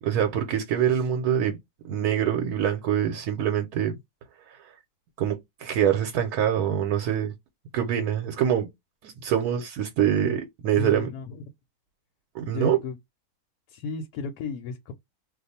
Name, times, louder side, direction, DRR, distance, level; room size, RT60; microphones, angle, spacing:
voice 1, 0.0-1.6 1.8-4.0 4.5-4.6 5.2-7.3 7.7-8.7 9.0-11.1 12.3-12.8, right 9 dB, 80° right, 1.1 m, -25 dB
voice 2, 10.8-11.4 12.5-13.0 13.7-14.9, left 5 dB, 90° left, 1.1 m, -34 dB
2.5 x 2.3 x 4.1 m
omnidirectional pair, 1.6 m